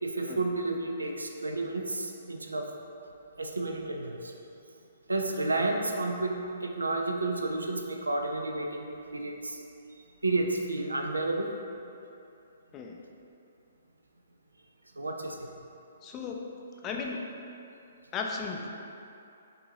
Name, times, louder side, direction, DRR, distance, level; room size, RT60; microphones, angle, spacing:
voice 1, 0.0-2.7 3.4-4.3 5.1-9.6 10.2-11.5 14.9-15.6, right 2 dB, 80° right, 3 dB, 0.4 m, -31 dB
voice 2, 16.0-16.6 16.8-17.2 18.1-18.7, left 5 dB, 20° left, 1 dB, 0.4 m, -35 dB
5.4 x 2.7 x 2.7 m, 2.7 s
figure-of-eight pair, 125°, 0 cm